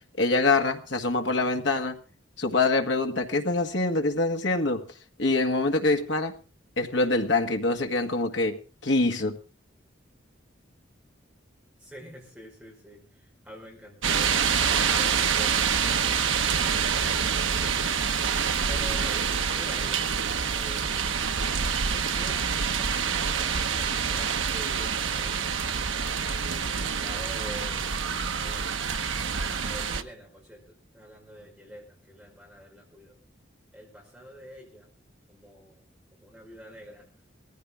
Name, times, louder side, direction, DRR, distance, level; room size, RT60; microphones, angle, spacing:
voice 1, 0.2-2.0 2.4-4.9 5.2-6.3 6.8-9.4, left 3 dB, 65° left, 4 dB, 1.7 m, -25 dB
voice 2, 11.8-20.0 20.4-21.1 21.6-22.5 22.7-25.8 26.3-28.9 29.6-33.2 33.7-34.9 35.3-35.8 36.1-37.1, equal, 5° right, -1 dB, 5.0 m, -47 dB
sound 1, 14.0-30.0, right 6 dB, 80° right, 1.0 m, -26 dB
18.5 x 15.0 x 3.6 m, 0.35 s
head